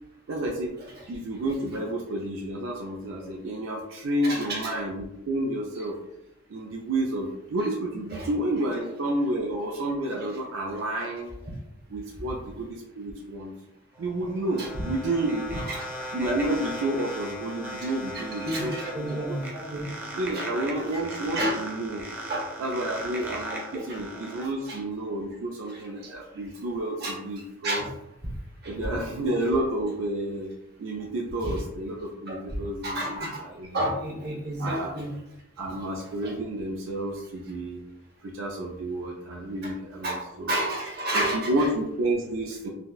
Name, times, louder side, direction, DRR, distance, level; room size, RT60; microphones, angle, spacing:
voice 1, 0.3-0.8 1.1-6.0 6.5-11.3 11.9-13.5 14.0-15.4 16.1-18.8 19.1-19.4 20.1-22.0 22.6-27.8 28.6-30.5 30.8-33.8 34.6-34.9 35.6-37.8 38.2-40.5 41.1-42.7, right 1 dB, 90° right, -1 dB, 0.4 m, -30 dB
voice 2, 4.2-4.7 5.7-5.8 8.1-8.3 14.6-14.7 15.6-15.8 17.8-19.9 20.3-20.5 20.8-21.0 21.3-21.6 22.3-22.4 23.7-24.0 24.4-24.8 25.7-26.1 27.0-27.1 27.6-27.9 28.6-28.8 31.4-31.6 32.3-32.4 32.8-33.4 33.7-35.2 36.2-36.3 40.0-41.7, right 1 dB, 55° right, -2 dB, 0.9 m, -31 dB
sound 1, 14.0-24.4, equal, 10° right, 0.6 m, -37 dB
4.0 x 2.1 x 2.3 m, 0.86 s
head